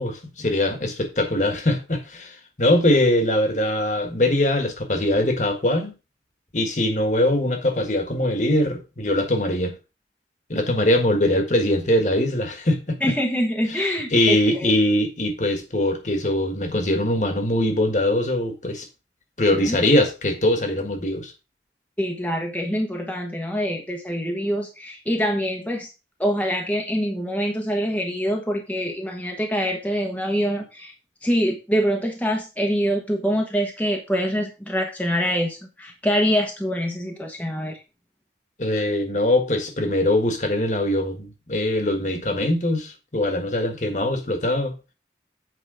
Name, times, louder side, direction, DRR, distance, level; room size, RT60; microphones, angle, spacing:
voice 1, 0.0-5.9 6.5-9.7 10.5-13.0 13.7-18.9 19.4-21.3 38.6-44.8, left 1 dB, 45° left, 1.6 m, -22 dB
voice 2, 13.0-14.7 19.5-19.8 22.0-25.9 26.2-30.9 31.2-37.8, equal, 10° left, 1.1 m, -25 dB
8.1 x 4.9 x 5.0 m
head